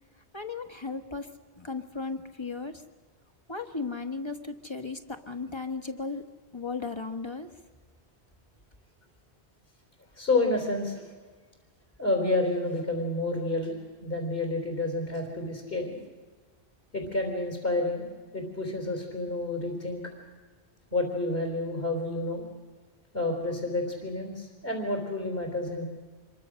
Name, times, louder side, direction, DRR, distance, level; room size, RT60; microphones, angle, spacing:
voice 1, 0.3-1.3 1.6-2.8 3.5-6.2 6.5-7.5, left 4 dB, 25° left, 6 dB, 1.5 m, -35 dB
voice 2, 10.2-11.0 12.0-13.8 14.0-16.0 16.9-18.1 18.3-20.0 20.9-22.4 23.1-25.8, left 2 dB, 60° left, 2 dB, 4.0 m, -29 dB
26.5 x 23.5 x 6.5 m, 1.4 s
omnidirectional pair, 1.1 m